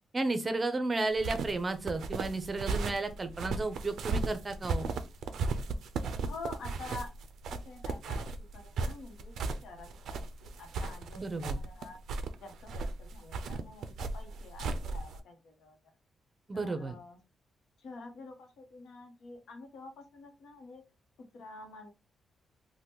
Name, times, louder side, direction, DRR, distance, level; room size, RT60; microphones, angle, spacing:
voice 1, 0.1-4.9 11.2-11.6 16.5-16.9, right 3 dB, 30° right, 8 dB, 0.5 m, -33 dB
sound 1, 1.1-15.2, right 3 dB, 80° right, 0.3 m, -36 dB
voice 2, 6.2-7.1 7.5-12.0 12.4-15.8 16.5-17.2 17.8-20.8 21.3-21.9, left 3 dB, 85° left, 4 dB, 0.8 m, -48 dB
2.8 x 2.1 x 3.4 m, 0.28 s
cardioid pair, 110°, 0 cm